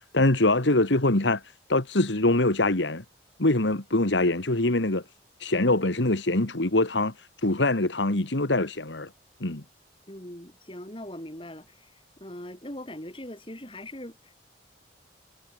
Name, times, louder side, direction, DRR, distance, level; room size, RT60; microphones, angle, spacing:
voice 1, 0.1-1.4 1.7-3.0 3.4-5.0 5.4-7.1 7.4-9.1 9.4-9.6, left 2 dB, 75° left, 2.0 m, -23 dB
voice 2, 10.1-11.9 12.2-14.3, left 1 dB, 30° left, 5.1 m, -41 dB
head